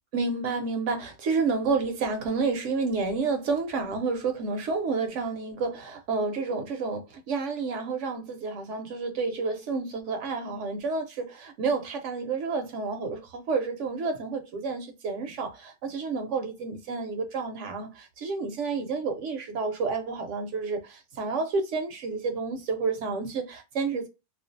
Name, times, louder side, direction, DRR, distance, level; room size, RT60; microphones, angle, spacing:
voice 1, 0.1-24.1, right 4 dB, 70° right, 0.8 m, -30 dB
2.4 x 2.2 x 2.5 m
omnidirectional pair, 1.4 m